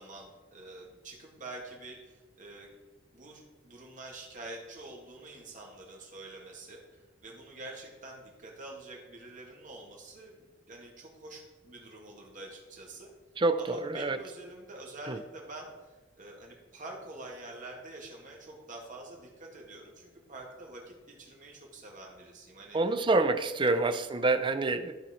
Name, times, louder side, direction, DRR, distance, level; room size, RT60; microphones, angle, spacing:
voice 1, 0.0-2.7 3.1-13.1 13.6-22.8 23.7-24.0, right 2 dB, 45° right, -1 dB, 1.9 m, -47 dB
voice 2, 13.4-14.2 15.1-15.2 22.7-24.9, right 3 dB, 25° right, 9 dB, 0.5 m, -27 dB
13.0 x 4.4 x 4.2 m, 1.2 s
head